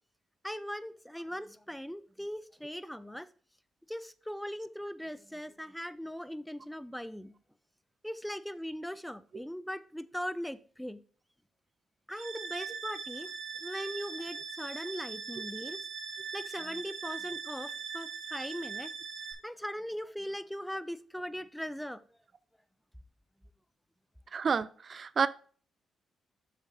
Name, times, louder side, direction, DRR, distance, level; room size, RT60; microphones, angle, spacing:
voice 1, 0.4-3.3 3.9-7.3 8.0-11.0 12.1-13.3 13.6-15.8 16.3-18.9 19.4-22.0, equal, 5° left, 0.5 m, -39 dB
sound 1, 12.1-19.3, right 6 dB, 85° right, 1.2 m, -41 dB
voice 2, 24.3-25.3, right 5 dB, 50° right, 0.3 m, -29 dB
8.1 x 6.4 x 2.6 m
supercardioid pair, 55°, 0 cm